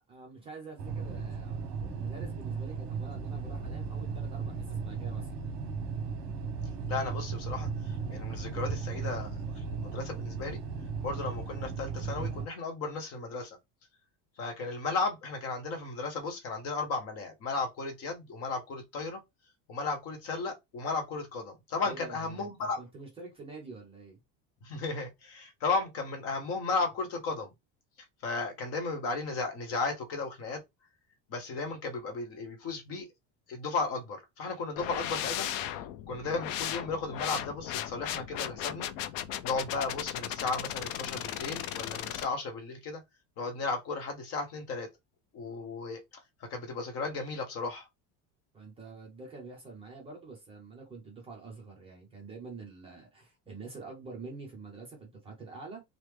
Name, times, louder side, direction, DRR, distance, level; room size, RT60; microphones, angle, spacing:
voice 1, 0.1-5.4 21.8-24.2 48.5-55.8, right 3 dB, 15° right, 0.5 m, -47 dB
sound 1, 0.8-12.5, right 5 dB, 55° right, 0.8 m, -36 dB
voice 2, 6.9-10.6 11.0-13.6 14.4-19.2 19.7-22.8 24.6-27.5 28.2-30.6 31.3-33.1 33.5-35.7 36.1-38.9 39.4-43.0 43.4-44.9 45.3-46.0 46.4-47.9, left 3 dB, 40° left, 0.7 m, -35 dB
sound 2, 34.8-42.3, left 11 dB, 85° left, 0.5 m, -36 dB
3.1 x 2.0 x 3.2 m
cardioid pair, 180°, 38 cm